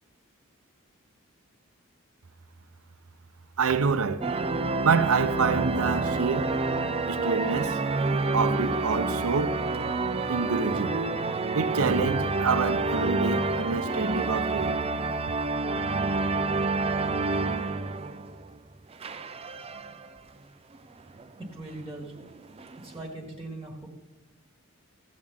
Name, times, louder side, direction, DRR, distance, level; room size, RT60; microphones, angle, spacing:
voice 1, 3.6-4.3 4.8-6.5 7.1-7.8 8.3-9.6 10.3-11.0 11.5-14.8, right 5 dB, 75° right, 0.6 m, -27 dB
sound 1, 4.2-18.6 18.9-20.1 20.7-20.8 21.1-21.2 22.0-23.1, right 3 dB, 25° right, 0.4 m, -28 dB
voice 2, 21.4-22.1 22.8-23.9, right 2 dB, 10° right, 1.4 m, -40 dB
14.5 x 8.4 x 3.6 m
head